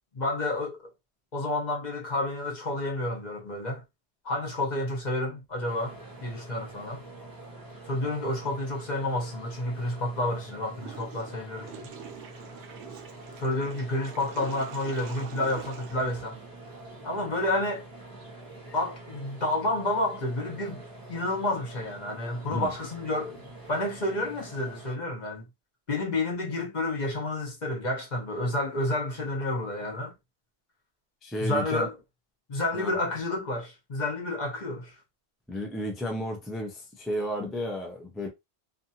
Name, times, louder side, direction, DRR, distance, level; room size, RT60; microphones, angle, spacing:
voice 1, 0.1-0.9 1.3-3.8 4.2-7.0 7.9-11.9 13.4-16.4 17.0-17.9 18.7-25.5 25.9-30.1 31.4-31.9 32.5-35.0, left 1 dB, 45° left, 1.0 m, -30 dB
sound 1, 5.6-24.9, right 2 dB, 20° right, 1.0 m, -46 dB
Water / Toilet flush, 10.7-16.9, right 9 dB, 85° right, 0.9 m, -45 dB
voice 2, 31.2-31.9 32.7-32.9 35.5-38.3, equal, ahead, 0.4 m, -32 dB
2.6 x 2.4 x 2.8 m
omnidirectional pair, 1.1 m